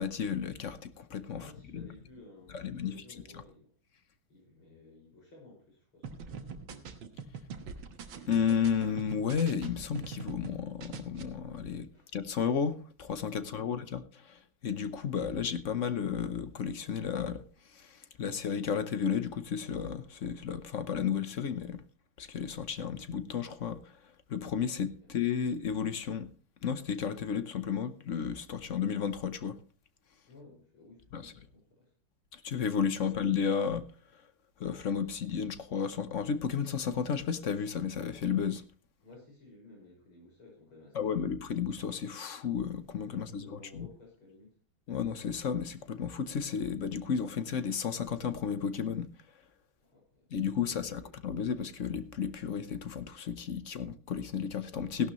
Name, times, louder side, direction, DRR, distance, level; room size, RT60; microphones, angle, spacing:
voice 1, 0.0-1.5 1.7-1.8 2.5-3.0 8.3-21.8 22.2-26.3 26.6-29.6 31.1-31.3 32.3-33.9 34.1-34.2 34.6-38.6 40.9-43.9 44.9-49.1 50.3-55.1, left 7 dB, 55° left, 0.9 m, -33 dB
voice 2, 1.3-3.7 4.3-6.6 11.9-12.1 13.3-13.8 25.0-25.1 30.3-31.9 33.0-33.2 39.0-41.3 43.1-44.6 49.8-51.2, left 2 dB, 80° left, 6.6 m, -56 dB
sound 1, 6.0-10.5 10.8-11.2, right 6 dB, 70° right, 2.1 m, -43 dB
16.5 x 11.5 x 3.1 m
omnidirectional pair, 2.3 m